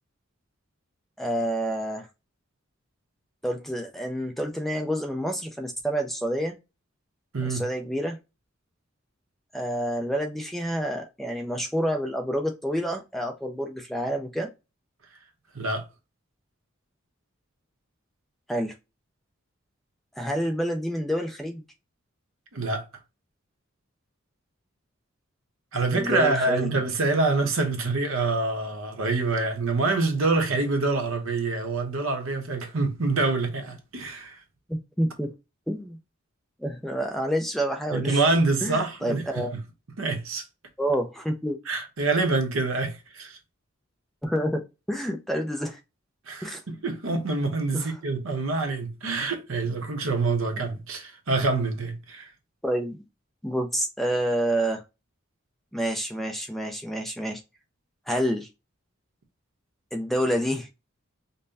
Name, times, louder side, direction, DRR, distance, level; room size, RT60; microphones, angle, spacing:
voice 1, 1.2-2.1 3.4-6.6 7.4-8.2 9.5-14.5 18.5-18.7 20.2-21.6 25.9-26.7 34.7-35.3 35.7-36.0 36.6-38.2 38.6-39.5 40.8-41.6 44.2-45.8 46.4-46.6 47.7-47.9 52.6-53.0 53.4-54.8 55.7-57.4 58.1-58.5 59.9-60.7, equal, ahead, 0.4 m, -28 dB
voice 2, 7.3-7.6 15.5-15.8 22.5-22.8 25.7-34.4 37.9-39.5 40.0-40.4 41.7-43.4 46.3-52.3, right 3 dB, 75° right, 0.9 m, -26 dB
5.3 x 2.1 x 2.6 m
head